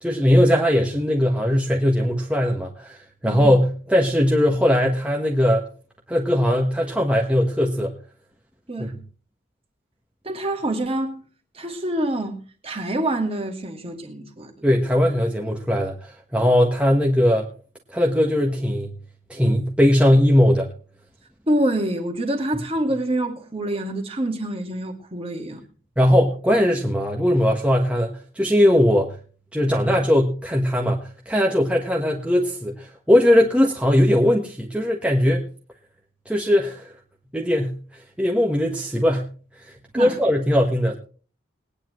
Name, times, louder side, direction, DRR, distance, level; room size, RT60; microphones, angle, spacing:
voice 1, 0.0-5.7 6.1-7.9 8.8-8.9 14.6-17.5 17.9-18.9 19.3-20.7 26.0-29.1 29.5-35.4 36.3-36.9 37.3-37.8 38.2-39.3 39.9-40.9, equal, 5° right, 1.4 m, -19 dB
voice 2, 10.2-11.2 11.5-14.5 21.5-25.6 39.9-40.2, right 1 dB, 30° right, 2.1 m, -26 dB
21.0 x 9.9 x 3.1 m
head